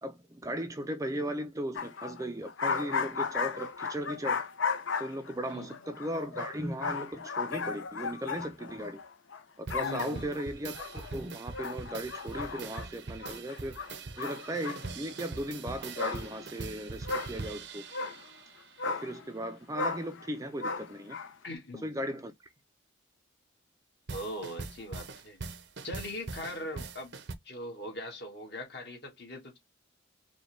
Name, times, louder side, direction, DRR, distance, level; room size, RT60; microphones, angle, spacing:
voice 1, 0.0-4.4 5.0-9.0 9.6-13.8 14.2-17.8 18.8-21.2 21.8-22.3, right 1 dB, 15° right, 0.4 m, -37 dB
sound 1, 1.8-9.4 9.7-10.4 10.7-11.1 11.5-12.9 13.2-15.1 15.5-15.6 15.8-16.5 17.1-17.4 17.9-18.2 18.8-19.3 19.7-20.3 20.6-21.3, left 5 dB, 75° left, 0.7 m, -35 dB
sound 2, 9.7-18.8 24.1-27.3, right 3 dB, 60° right, 0.6 m, -42 dB
voice 2, 9.8-10.4 21.4-21.9 24.1-25.4 25.8-27.1 27.4-29.6, left 1 dB, 55° left, 1.8 m, -41 dB
5.0 x 2.3 x 3.2 m
head